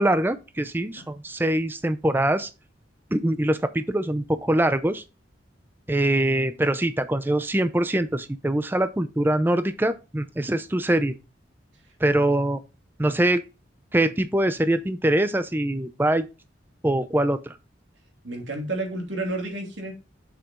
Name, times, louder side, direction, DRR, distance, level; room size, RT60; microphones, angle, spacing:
voice 1, 0.0-2.5 3.1-5.0 5.9-11.1 12.0-12.6 13.0-13.4 13.9-16.3 16.8-17.6, right 1 dB, 10° right, 0.4 m, -23 dB
voice 2, 18.2-19.9, right 2 dB, 75° right, 2.7 m, -31 dB
6.8 x 5.8 x 3.6 m
head